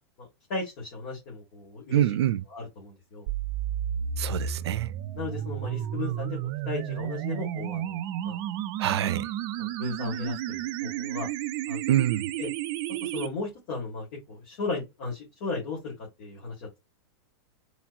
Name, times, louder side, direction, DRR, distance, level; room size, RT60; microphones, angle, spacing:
voice 1, 0.2-2.0 2.5-3.3 5.1-6.4 6.7-8.4 8.9-9.2 9.6-11.3 11.7-11.8 12.4-12.5 13.0-15.9 16.2-16.8, left 3 dB, 40° left, 2.0 m, -36 dB
voice 2, 1.9-2.4 4.2-4.9 8.8-9.3 11.9-12.3, right 12 dB, 90° right, 0.5 m, -25 dB
sound 1, 3.3-13.3, right 10 dB, 30° right, 0.4 m, -32 dB
4.3 x 3.0 x 2.5 m
supercardioid pair, 160°, 14 cm